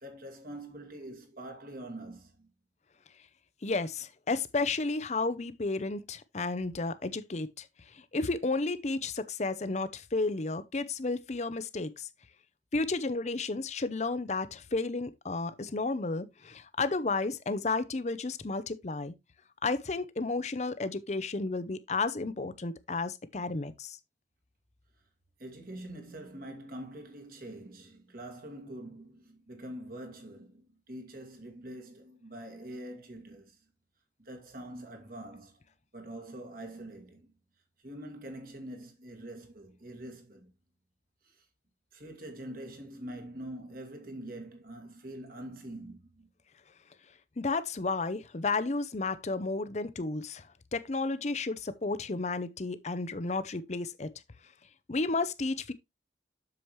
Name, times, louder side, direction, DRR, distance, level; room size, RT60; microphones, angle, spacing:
voice 1, 0.0-2.5 25.4-33.6 34.2-35.6 35.9-37.3 37.8-40.5 41.2-41.4 41.9-46.3, right 1 dB, 55° right, 2.3 m, -44 dB
voice 2, 3.6-12.1 12.7-19.1 19.6-24.0 47.4-54.1 54.9-55.7, left 3 dB, 40° left, 0.7 m, -32 dB
7.8 x 7.0 x 3.1 m
head